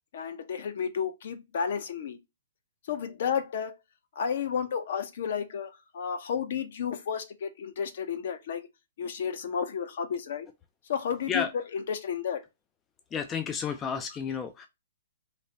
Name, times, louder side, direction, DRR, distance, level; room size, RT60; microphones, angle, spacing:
voice 1, 0.1-2.2 2.9-3.8 4.2-8.7 9.0-10.5 10.9-11.5 11.7-12.4, left 7 dB, 55° left, 0.7 m, -32 dB
voice 2, 13.1-14.7, left 6 dB, 15° left, 0.3 m, -31 dB
3.2 x 2.1 x 3.9 m
hypercardioid pair, 155°, 0 cm